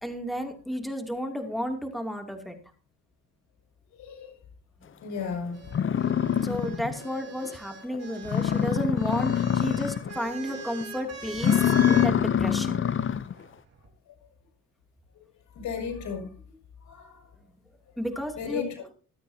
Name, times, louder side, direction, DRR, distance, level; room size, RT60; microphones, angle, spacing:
voice 1, 0.0-2.6 6.4-12.9 18.0-18.6, equal, ahead, 4 dB, 2.7 m, -32 dB
voice 2, 5.0-5.6 15.5-16.3 16.8-17.2 18.4-18.7, left 6 dB, 75° left, 2 dB, 5.7 m, -33 dB
sound 1, 5.2-5.3 5.7-7.1 7.5-7.6 7.9-8.0 8.2-10.2 10.5-10.8 11.3-13.3, left 9 dB, 40° left, 0.7 m, -25 dB
sound 2, 5.5-12.1 13.3-13.9, right 3 dB, 55° right, 3.9 m, -42 dB
25.0 x 9.2 x 2.8 m, 0.36 s
cardioid pair, 90°, 30 cm